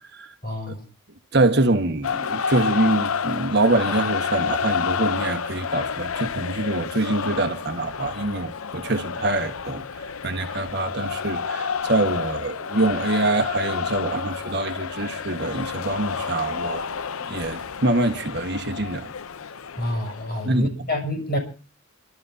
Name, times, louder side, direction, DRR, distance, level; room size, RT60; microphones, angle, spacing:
voice 1, 0.4-0.8 19.8-21.4, left 1 dB, 45° left, 6.3 m, -27 dB
voice 2, 1.3-16.8 17.2-19.1 20.4-20.7, right 2 dB, 50° right, 1.4 m, -25 dB
sound 1, 2.0-20.6, left 6 dB, 90° left, 0.7 m, -29 dB
30.0 x 13.0 x 2.7 m
head